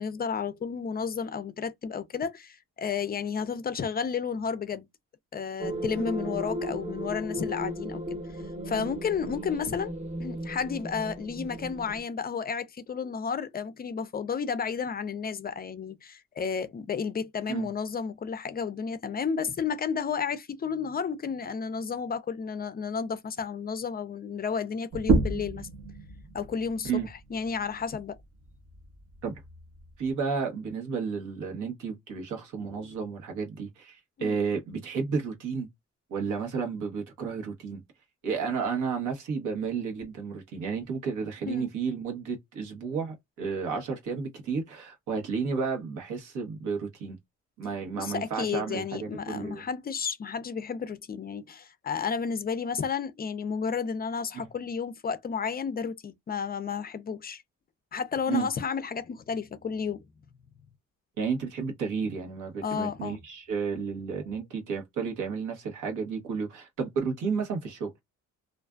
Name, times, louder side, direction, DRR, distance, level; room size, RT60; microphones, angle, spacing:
voice 1, 0.0-4.9 5.3-9.9 10.2-25.7 26.3-27.0 27.3-28.2 32.6-32.9 34.2-34.4 41.4-41.7 48.0-57.4 57.9-60.0 62.6-63.2 63.7-63.8, left 6 dB, 30° left, 0.4 m, -32 dB
sound 1, 5.6-12.0, equal, 20° right, 0.8 m, -36 dB
sound 2, 24.9-30.1, right 3 dB, 50° right, 0.7 m, -32 dB
voice 2, 30.0-35.7 36.1-37.8 38.2-47.2 47.6-49.6 58.3-58.5 61.2-67.9, right 5 dB, 85° right, 1.1 m, -32 dB
2.5 x 2.3 x 2.2 m
cardioid pair, 90°, 30 cm